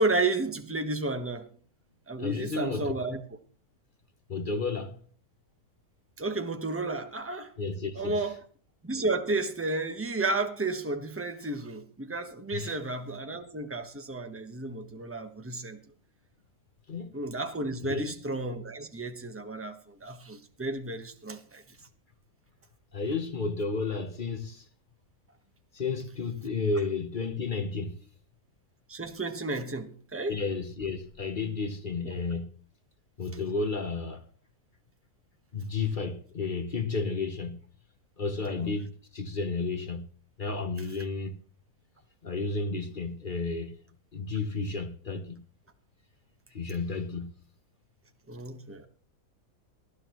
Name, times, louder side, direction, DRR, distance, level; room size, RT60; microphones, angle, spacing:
voice 1, 0.0-1.5 2.1-3.2 6.2-7.5 7.9-8.3 8.8-15.8 17.1-21.6 28.9-30.4 32.0-32.2 38.6-38.7 48.3-48.9, right 2 dB, 10° right, 1.1 m, -32 dB
voice 2, 2.2-2.9 4.3-5.0 7.6-8.3 12.5-12.7 16.9-17.1 17.8-18.2 22.9-24.6 25.7-27.9 30.3-32.5 33.2-34.2 35.5-37.6 38.2-40.0 40.4-41.3 42.2-43.8 44.1-45.4 46.5-47.3, left 4 dB, 40° left, 0.9 m, -32 dB
19.0 x 12.5 x 3.1 m
omnidirectional pair, 1.6 m